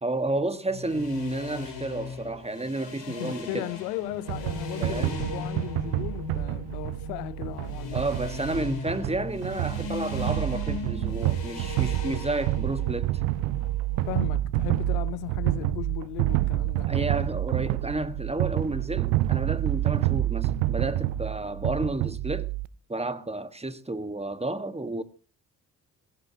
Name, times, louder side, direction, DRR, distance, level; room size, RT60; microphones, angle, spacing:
voice 1, 0.0-3.7 4.8-5.2 7.9-13.2 16.8-22.5 22.9-25.0, right 2 dB, 10° right, 1.5 m, -31 dB
sound 1, 0.7-14.3, left 4 dB, 60° left, 5.5 m, -38 dB
voice 2, 3.1-8.0 14.1-16.9, left 17 dB, 80° left, 0.9 m, -36 dB
sound 2, 4.3-22.7, right 16 dB, 70° right, 0.8 m, -28 dB
20.5 x 16.5 x 2.8 m
hypercardioid pair, 45°, 49 cm